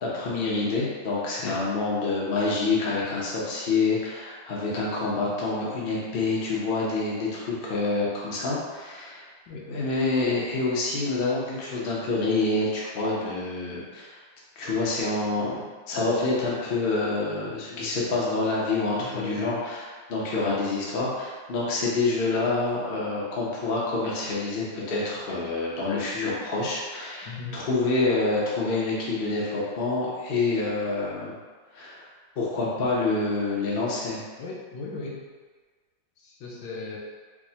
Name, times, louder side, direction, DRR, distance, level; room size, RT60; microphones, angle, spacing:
voice 1, 0.0-9.2 9.7-14.2 14.6-31.3 31.7-32.0 32.4-34.2, left 3 dB, 60° left, -5 dB, 0.5 m, -27 dB
voice 2, 19.0-19.6 27.2-27.6 34.4-35.2 36.2-37.0, left 3 dB, 75° left, -3 dB, 1.3 m, -37 dB
4.6 x 2.1 x 2.8 m, 1.4 s
omnidirectional pair, 2.0 m